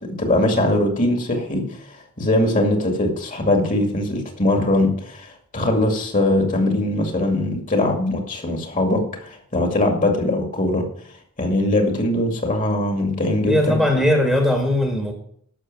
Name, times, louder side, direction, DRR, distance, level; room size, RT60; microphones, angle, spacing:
voice 1, 0.1-1.6 2.2-10.9 11.4-13.8, left 1 dB, 35° left, 3 dB, 2.3 m, -21 dB
voice 2, 13.4-15.1, left 1 dB, ahead, 2 dB, 1.6 m, -19 dB
12.0 x 6.7 x 7.5 m, 0.63 s
head